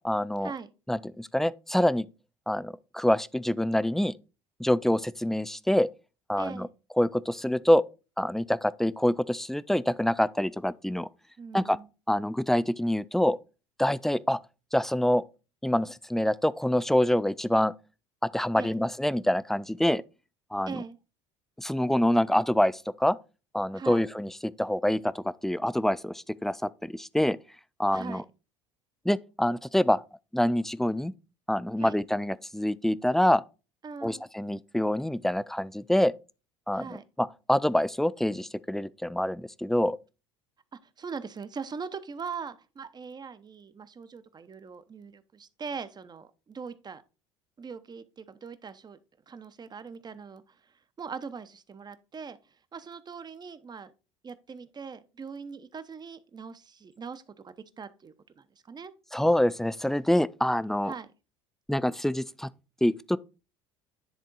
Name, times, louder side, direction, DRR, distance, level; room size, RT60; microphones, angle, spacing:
voice 1, 0.0-0.5 0.9-2.1 2.5-4.1 4.6-5.9 6.3-6.7 7.0-7.8 8.2-11.1 11.5-11.8 12.1-13.4 13.8-14.4 14.7-15.2 15.6-17.7 18.2-20.0 20.5-20.8 21.6-23.2 23.5-27.4 27.8-28.2 29.1-30.0 30.3-31.1 31.5-33.4 34.0-36.1 36.7-36.9 37.2-40.0 59.1-60.9 61.7-62.5 62.8-63.2, left 1 dB, ahead, 0.3 m, -26 dB
voice 2, 6.4-6.7 11.4-11.9 18.5-18.8 20.7-21.0 23.7-24.1 27.9-28.2 31.8-32.0 33.8-34.2 36.7-37.0 40.7-47.0 47.6-49.0 49.3-53.9 54.2-58.9 60.8-61.1, right 5 dB, 25° right, 0.8 m, -41 dB
10.5 x 3.6 x 4.0 m
hypercardioid pair, 75°, 15 cm